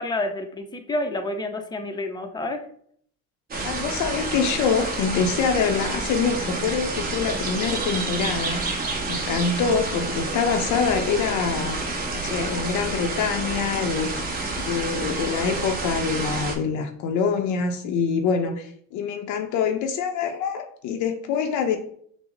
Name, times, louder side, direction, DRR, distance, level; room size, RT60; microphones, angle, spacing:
voice 1, 0.0-2.6, left 2 dB, 15° left, 5 dB, 0.6 m, -29 dB
sound 1, 3.5-16.6, right 3 dB, 30° right, 0.9 m, -29 dB
voice 2, 3.6-8.6 9.1-11.8 12.1-14.2 14.6-21.8, left 6 dB, 65° left, 4 dB, 0.6 m, -25 dB
5.8 x 2.0 x 3.8 m, 0.62 s
cardioid pair, 120°, 33 cm